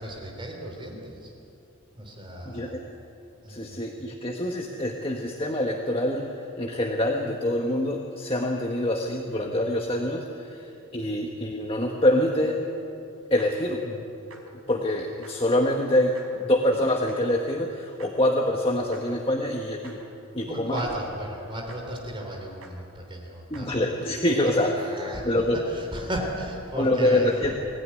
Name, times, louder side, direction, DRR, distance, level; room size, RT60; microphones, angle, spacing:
voice 1, 0.0-1.3 1.9-2.8 3.4-3.9 20.5-23.8 24.5-27.5, equal, 25° right, 1 dB, 3.6 m, -35 dB
voice 2, 2.4-2.8 3.5-12.6 13.3-14.0 14.7-20.0 20.3-20.8 23.5-25.6 26.7-27.5, left 1 dB, 25° left, 1 dB, 1.5 m, -25 dB
sound 1, 13.4-13.5 14.3-14.4 15.2-15.3 16.1-16.3 17.1-17.2 18.0-18.1 18.9-19.0 19.8-19.9 20.8-20.9 21.7-21.8 22.6-22.7 23.5-23.6 24.5-24.6, right 4 dB, 80° right, 5.0 m, -47 dB
25.0 x 16.5 x 9.8 m, 2.9 s
head